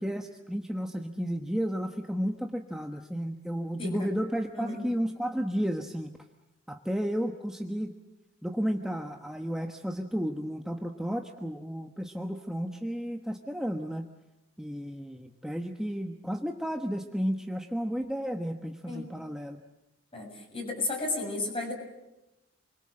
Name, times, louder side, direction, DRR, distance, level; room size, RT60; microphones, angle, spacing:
voice 1, 0.0-6.1 6.7-7.9 8.4-14.1 14.6-19.6, equal, 5° right, 3 dB, 1.2 m, -32 dB
voice 2, 3.8-4.1 4.5-4.8 18.9-19.0 20.1-21.7, left 2 dB, 30° left, 2 dB, 7.5 m, -33 dB
29.0 x 23.0 x 7.7 m, 0.95 s
head